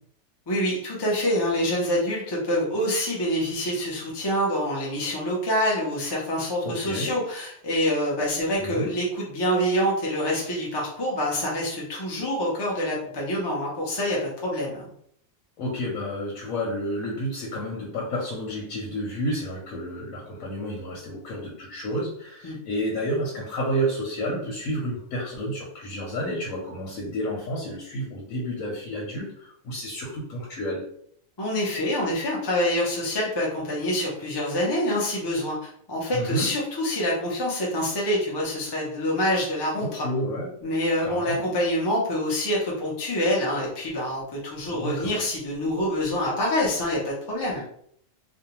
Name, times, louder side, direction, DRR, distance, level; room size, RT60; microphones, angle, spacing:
voice 1, 0.5-14.9 22.4-22.6 31.4-40.1 40.6-47.6, equal, 40° left, -4 dB, 0.3 m, -26 dB
voice 2, 6.6-7.2 8.6-8.9 15.6-30.8 36.1-36.5 39.8-40.5 41.0-41.5 44.7-45.2, equal, 90° left, -3 dB, 1.1 m, -30 dB
2.5 x 2.2 x 2.9 m, 0.66 s
omnidirectional pair, 1.4 m